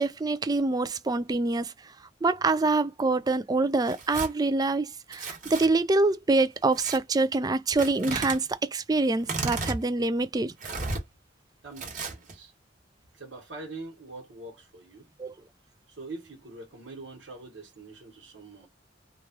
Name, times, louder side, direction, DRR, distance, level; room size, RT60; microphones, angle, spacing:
voice 1, 0.0-1.7 2.2-10.5 15.2-15.3, right 3 dB, 20° right, 0.4 m, -25 dB
Tearing, 3.8-4.3 5.1-5.7 6.7-7.0 7.8-8.4 9.2-9.8 10.6-11.0 11.8-12.3, right 3 dB, 45° right, 1.3 m, -33 dB
voice 2, 11.6-12.5 13.1-15.1 15.9-18.7, right 2 dB, 85° right, 1.3 m, -43 dB
3.1 x 2.3 x 2.8 m
head